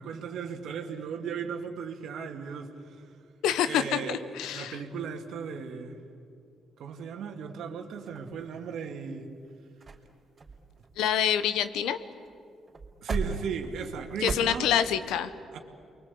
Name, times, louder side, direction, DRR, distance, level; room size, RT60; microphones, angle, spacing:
voice 1, 0.0-3.1 3.6-4.3 4.5-6.0 6.8-9.3 13.0-14.7 15.5-15.6, right 6 dB, 75° right, 4 dB, 2.4 m, -36 dB
voice 2, 3.4-4.8 11.0-12.0 14.2-15.3, left 9 dB, 90° left, 11 dB, 1.1 m, -27 dB
sound 1, 8.1-8.9 9.5-9.6 9.8-10.1 10.4-11.9 12.2-12.3 12.7-14.4, right 4 dB, 35° right, 4.0 m, -37 dB
29.5 x 23.0 x 8.6 m, 2.5 s
cardioid pair, 90°, 0 cm